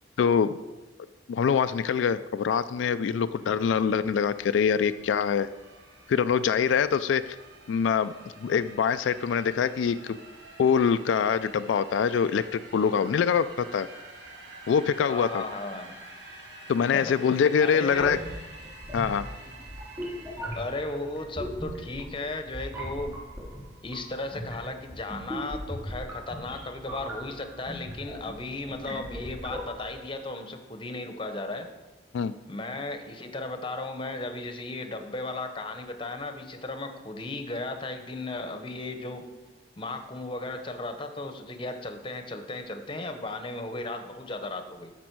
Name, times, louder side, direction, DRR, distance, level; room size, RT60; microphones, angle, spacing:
voice 1, 0.2-0.5 1.3-5.5 6.1-7.4 7.7-8.1 8.4-10.2 10.6-13.5 13.7-13.9 14.7-15.4 16.7-18.2 18.9-19.3 32.1-32.3, left 7 dB, 85° left, 12 dB, 0.3 m, -24 dB
sound 1, 3.3-21.0, right 2 dB, 75° right, 1.6 m, -48 dB
voice 2, 15.1-15.9 16.9-17.1 17.6-18.2 20.5-23.2 23.8-31.7 32.5-39.2 39.8-44.9, left 2 dB, 30° left, 6 dB, 0.9 m, -35 dB
sound 2, 18.0-30.1, equal, 15° right, 3.0 m, -39 dB
13.5 x 5.2 x 4.6 m, 1.1 s
head